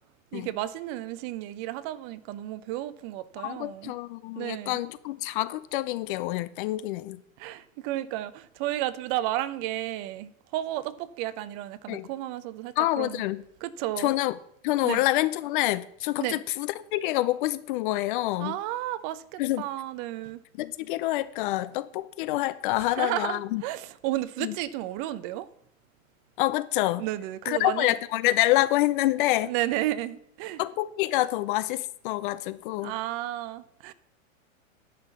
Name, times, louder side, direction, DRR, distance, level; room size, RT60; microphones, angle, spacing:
voice 1, 0.3-3.9 4.4-4.8 7.4-13.2 13.6-14.1 14.8-15.0 16.2-16.4 18.4-20.4 22.8-25.5 27.0-27.9 29.3-30.6 32.7-33.9, right 14 dB, 35° right, 0.8 m, -33 dB
voice 2, 3.4-7.2 11.9-12.1 12.8-13.4 14.0-14.3 14.6-18.5 19.4-19.7 20.6-23.6 24.4-24.5 26.4-27.0 27.5-29.5 30.6-32.9, left 17 dB, 40° left, 0.5 m, -27 dB
11.0 x 5.9 x 8.1 m
hypercardioid pair, 125°, 41 cm